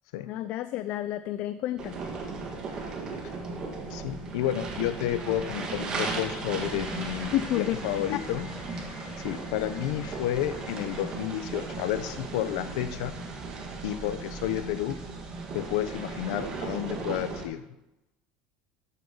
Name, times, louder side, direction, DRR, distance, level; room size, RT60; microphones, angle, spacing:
voice 1, 0.3-2.0 7.3-7.8, left 13 dB, 45° left, 12 dB, 0.5 m, -30 dB
sound 1, 1.8-17.4, right 3 dB, 25° right, 1.8 m, -36 dB
voice 2, 3.9-8.5 9.2-13.1 13.8-15.0 15.5-17.6, left 12 dB, 80° left, 11 dB, 0.8 m, -31 dB
sound 2, 6.7-11.1, left 3 dB, 15° left, 3.6 m, -47 dB
12.5 x 6.7 x 7.2 m, 0.92 s
cardioid pair, 170°, 3 cm